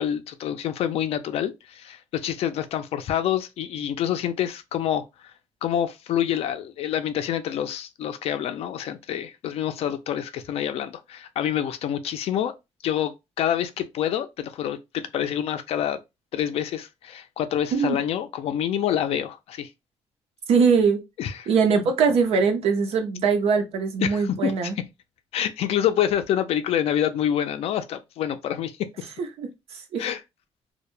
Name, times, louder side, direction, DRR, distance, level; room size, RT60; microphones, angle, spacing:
voice 1, 0.0-5.3 5.6-12.5 12.8-16.0 16.3-19.7 21.2-21.5 24.0-24.9 25.3-28.8 30.0-30.2, left 10 dB, 65° left, 0.4 m, -27 dB
voice 2, 20.5-21.0 21.5-24.8 29.2-29.5 29.9-30.0, right 5 dB, 70° right, 0.6 m, -21 dB
2.2 x 2.1 x 3.0 m
cardioid pair, 165°, 11 cm